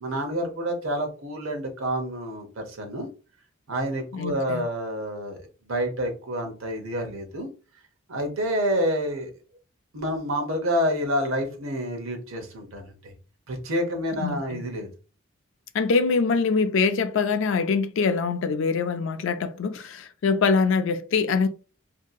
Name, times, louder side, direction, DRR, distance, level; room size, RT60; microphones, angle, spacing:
voice 1, 0.0-3.1 3.7-7.5 8.1-9.3 9.9-13.1 13.5-14.9, equal, 70° right, 0.8 m, -28 dB
voice 2, 4.1-4.6 14.2-14.6 15.7-21.5, left 4 dB, 60° left, 0.3 m, -24 dB
2.7 x 2.6 x 2.3 m
head